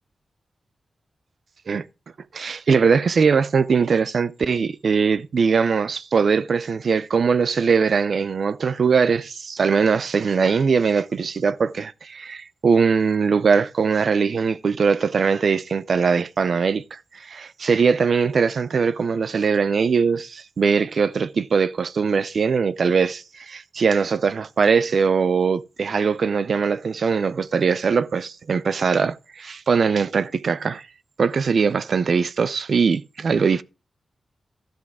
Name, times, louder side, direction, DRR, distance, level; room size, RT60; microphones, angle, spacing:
voice 1, 2.3-30.9 31.2-33.6, right 5 dB, 65° right, 0.5 m, -21 dB
12.5 x 6.0 x 4.7 m
cardioid pair, 80°, 0 cm